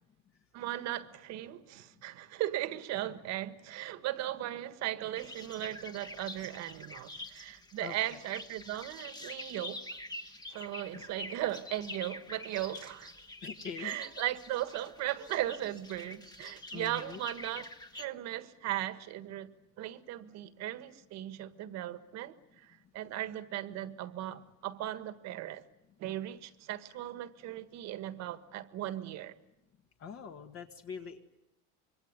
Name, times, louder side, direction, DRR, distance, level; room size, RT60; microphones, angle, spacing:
voice 1, 0.5-9.8 10.5-13.1 13.8-17.7 17.9-25.6 26.0-29.4, right 14 dB, 55° right, 1.6 m, -37 dB
sound 1, 5.2-18.0, left 1 dB, 10° left, 1.2 m, -46 dB
voice 2, 7.8-8.2 10.9-11.0 13.4-14.0 16.7-17.2 30.0-31.2, left 6 dB, 40° left, 1.8 m, -43 dB
26.0 x 23.0 x 9.6 m
cardioid pair, 160°, 33 cm